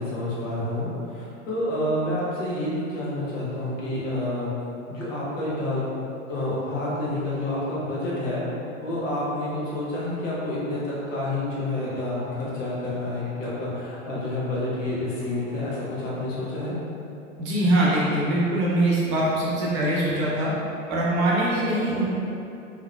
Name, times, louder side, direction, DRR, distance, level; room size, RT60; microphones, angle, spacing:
voice 1, 0.0-4.5 4.9-5.8 6.3-8.4 8.8-16.7, left 1 dB, 65° left, -7 dB, 1.1 m, -29 dB
voice 2, 17.4-20.5 20.9-22.1, right 1 dB, 35° right, -6 dB, 0.8 m, -22 dB
3.6 x 3.0 x 2.2 m, 2.7 s
figure-of-eight pair, 95°, 41 cm